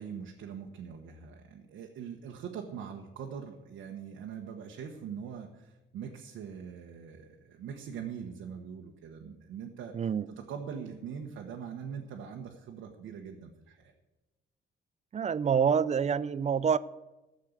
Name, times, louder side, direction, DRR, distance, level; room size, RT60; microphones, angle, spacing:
voice 1, 0.0-10.1 10.5-13.9, right 7 dB, 85° right, 1.3 m, -42 dB
voice 2, 9.9-10.3 15.1-16.8, right 7 dB, 35° right, 0.4 m, -27 dB
13.5 x 6.6 x 8.0 m
cardioid pair, 90°, 20 cm